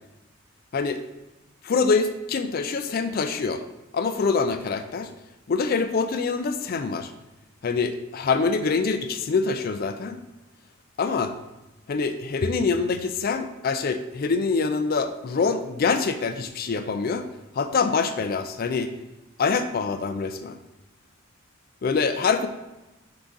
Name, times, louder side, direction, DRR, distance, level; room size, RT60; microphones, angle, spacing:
voice 1, 1.6-3.6 3.9-5.1 5.5-7.1 7.6-10.2 11.0-11.3 11.9-17.3 17.5-18.9 19.4-20.6 21.8-22.5, left 4 dB, 45° left, 9 dB, 0.4 m, -25 dB
7.0 x 3.8 x 3.7 m, 1.0 s
head